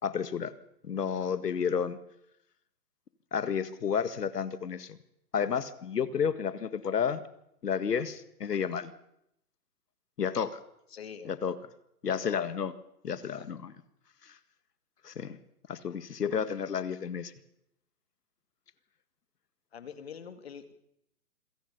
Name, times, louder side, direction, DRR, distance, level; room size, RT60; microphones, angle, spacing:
voice 1, 0.0-0.5 0.8-2.0 3.3-5.0 5.3-7.2 7.6-8.9 10.2-10.6 11.2-11.6 12.0-12.7 13.0-13.7 14.2-14.3 15.0-15.4 15.7-17.3, left 7 dB, 75° left, 13 dB, 2.0 m, -31 dB
voice 2, 10.9-11.3 12.1-12.4 19.7-20.7, left 7 dB, 40° left, 10 dB, 2.1 m, -44 dB
26.5 x 16.5 x 6.8 m, 0.79 s
hypercardioid pair, 175°, 48 cm